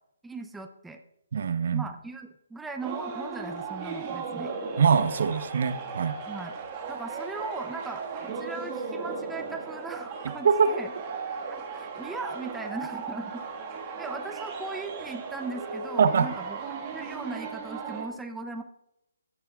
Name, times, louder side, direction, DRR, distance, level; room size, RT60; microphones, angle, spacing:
voice 1, 0.2-1.0 1.7-4.5 6.3-6.5 6.9-10.9 11.7-13.4 14.0-18.6, right 3 dB, 5° right, 5 dB, 0.5 m, -38 dB
voice 2, 1.3-1.8 4.8-6.2 10.4-10.7 16.0-16.3, right 6 dB, 55° right, 12 dB, 0.7 m, -23 dB
sound 1, 2.8-18.1, right 5 dB, 25° right, 1.5 m, -36 dB
15.5 x 10.0 x 2.3 m, 0.87 s
figure-of-eight pair, 140°, 0 cm